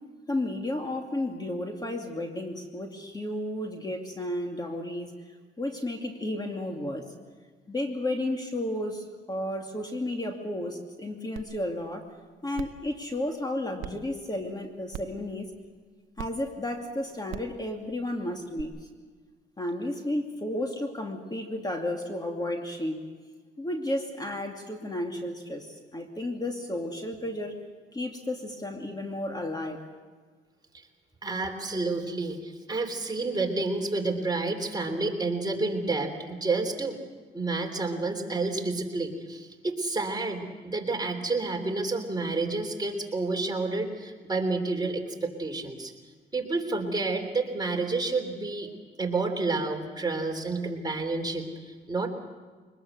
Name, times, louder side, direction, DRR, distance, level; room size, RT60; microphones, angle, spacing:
voice 1, 0.3-5.1 5.6-7.1 7.7-12.1 12.4-15.5 16.2-18.9 19.6-23.1 23.6-27.6 27.9-29.8, left 1 dB, 20° left, 3 dB, 2.6 m, -32 dB
sound 1, 11.4-11.5 11.9-12.0 12.5-12.8 13.8-13.9 14.9-15.2 16.2-16.3 17.3-17.5 18.6-18.7, right 13 dB, 85° right, 0.8 m, -38 dB
voice 2, 31.2-37.0 37.3-45.9 46.3-48.7 49.0-51.4 51.9-52.1, right 3 dB, 20° right, 3 dB, 3.4 m, -29 dB
23.5 x 20.5 x 7.9 m, 1.5 s
cardioid pair, 90°, 20 cm